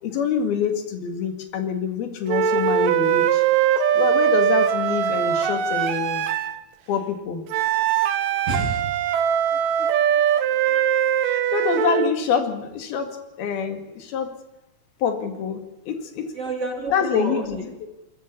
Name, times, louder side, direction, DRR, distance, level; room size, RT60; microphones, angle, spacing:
voice 1, 0.0-3.4 3.9-6.2 6.9-7.4 11.2-14.3 15.0-16.3 16.9-17.7, left 6 dB, 90° left, 7 dB, 4.0 m, -26 dB
sound 1, 2.3-6.6 7.5-12.1, right 9 dB, 70° right, 2.7 m, -21 dB
voice 2, 8.5-8.8 9.8-10.2 10.7-10.8 16.3-17.9, right 2 dB, 40° right, 2 dB, 4.1 m, -30 dB
23.0 x 14.5 x 8.6 m, 0.95 s
omnidirectional pair, 4.2 m